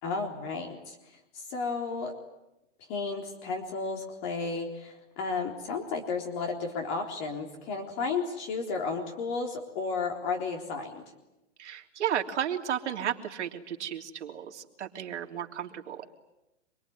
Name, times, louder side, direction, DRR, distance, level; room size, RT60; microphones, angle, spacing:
voice 1, 0.0-2.1 2.9-11.0, left 4 dB, 40° left, 2 dB, 3.9 m, -33 dB
voice 2, 11.6-16.1, right 9 dB, 75° right, 3 dB, 3.3 m, -33 dB
28.0 x 22.0 x 9.6 m, 0.94 s
hypercardioid pair, 130°, 35 cm